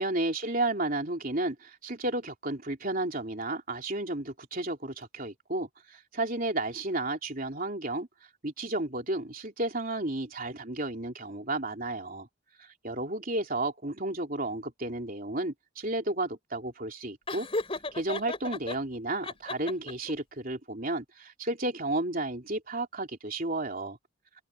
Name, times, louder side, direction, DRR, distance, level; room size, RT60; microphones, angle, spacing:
voice 1, 0.0-8.1 8.4-12.3 12.6-17.5 17.9-24.0, right 2 dB, 40° right, 3.6 m, -32 dB
Laughter, 17.3-18.8 19.2-20.1, left 2 dB, 25° left, 3.7 m, -34 dB
head